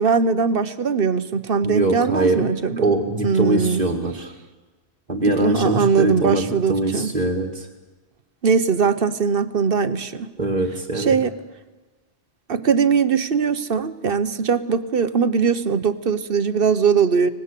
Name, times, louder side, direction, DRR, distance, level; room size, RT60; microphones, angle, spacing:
voice 1, 0.0-2.9 3.2-3.8 5.4-7.1 8.4-10.3 10.9-11.4 12.5-17.3, right 6 dB, 55° right, 12 dB, 1.1 m, -20 dB
voice 2, 1.6-2.4 2.7-4.3 5.1-7.7 10.4-11.2, right 2 dB, 40° right, 3 dB, 2.0 m, -22 dB
25.0 x 18.5 x 8.3 m, 1.3 s
omnidirectional pair, 1.2 m